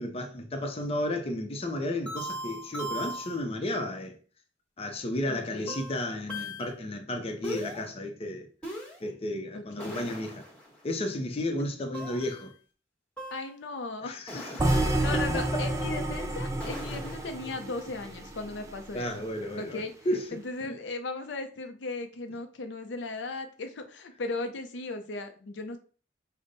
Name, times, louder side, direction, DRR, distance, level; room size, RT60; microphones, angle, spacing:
voice 1, 0.0-4.2 4.8-8.5 9.0-10.4 10.8-12.5 14.0-15.2 18.9-20.7, left 1 dB, 35° left, 0.6 m, -33 dB
sound 1, 2.1-3.4 5.7-6.7 7.4-7.8 8.6-9.0 9.8-10.8 11.9-12.5 13.2-13.6 14.3-15.1 16.6-17.4, equal, 5° left, 1.2 m, -39 dB
voice 2, 5.3-5.8 9.5-10.0 11.6-11.7 13.3-19.2 19.6-19.9 20.3-25.8, left 3 dB, 75° left, 0.5 m, -37 dB
sound 2, 14.6-18.7, right 2 dB, 15° right, 0.5 m, -29 dB
5.1 x 2.1 x 3.9 m
head